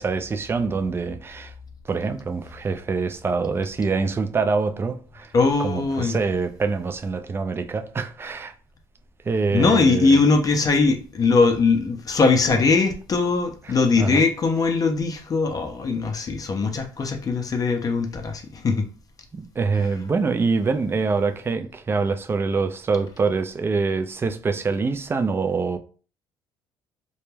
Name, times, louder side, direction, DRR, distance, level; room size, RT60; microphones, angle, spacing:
voice 1, 0.0-1.5 1.9-5.3 5.6-8.5 9.2-10.2 10.6-10.7 12.5-12.6 13.7-14.3 19.3-25.8, right 4 dB, 25° right, 0.3 m, -25 dB
voice 2, 5.3-6.2 9.5-18.8, left 4 dB, 35° left, 0.5 m, -20 dB
2.2 x 2.1 x 3.1 m
supercardioid pair, 80°, 10 cm